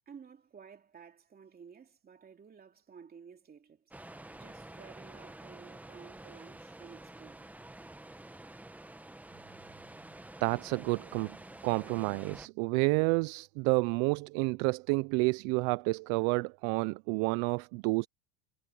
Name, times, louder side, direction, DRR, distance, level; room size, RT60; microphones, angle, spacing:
voice 1, 0.1-3.9 4.3-7.5, right 6 dB, 20° right, 2.7 m, -54 dB
sound 1, 3.9-12.5, right 1 dB, 5° right, 1.0 m, -49 dB
voice 2, 10.4-11.4 11.6-18.1, right 28 dB, 60° right, 0.5 m, -29 dB
cardioid pair, 145°, 42 cm